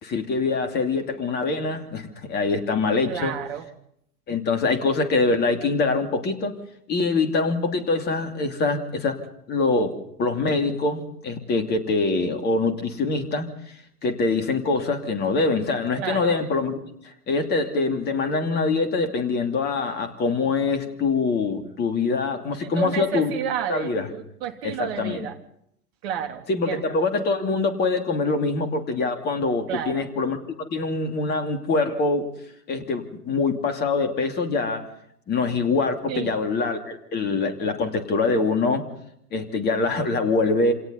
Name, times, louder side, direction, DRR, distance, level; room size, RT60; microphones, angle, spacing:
voice 1, 0.0-3.3 4.3-6.6 6.9-9.2 9.5-13.8 14.0-16.8 17.0-23.3 23.7-24.1 24.6-25.2 26.5-30.4 30.7-32.3 32.7-34.9 35.3-38.8 39.3-40.7, left 3 dB, 20° left, 7 dB, 2.8 m, -24 dB
voice 2, 3.1-3.6 16.0-16.4 22.6-25.4 26.0-26.8 29.7-30.1 36.1-36.4, right 9 dB, 40° right, 5 dB, 3.2 m, -31 dB
28.0 x 27.0 x 4.1 m, 0.73 s
figure-of-eight pair, 110°, 47 cm